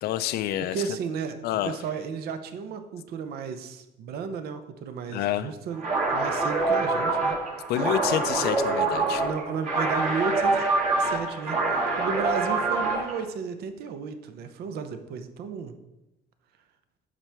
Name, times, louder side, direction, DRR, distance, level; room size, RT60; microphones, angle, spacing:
voice 1, 0.0-0.8 1.4-1.8 5.1-5.5 7.7-9.2, left 12 dB, 70° left, 12 dB, 0.4 m, -28 dB
voice 2, 0.7-1.4 1.6-5.8 6.1-7.4 9.2-10.7 11.0-15.7, right 6 dB, 70° right, 9 dB, 0.6 m, -33 dB
sound 1, 5.8-13.2, right 3 dB, 45° right, 1.9 m, -25 dB
7.3 x 5.8 x 3.4 m, 0.95 s
cardioid pair, 110°, 17 cm